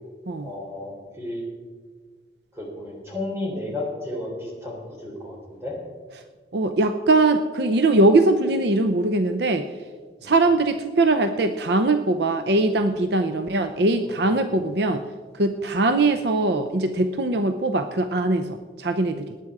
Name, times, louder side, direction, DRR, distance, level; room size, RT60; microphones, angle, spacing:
voice 1, 0.4-1.4 2.5-5.8 10.2-10.3 14.1-14.3, left 2 dB, 15° right, -2 dB, 3.5 m, -33 dB
voice 2, 6.5-9.7 10.2-15.0 15.3-19.3, right 2 dB, 60° right, 8 dB, 0.6 m, -21 dB
19.5 x 9.2 x 4.8 m, 1.5 s
head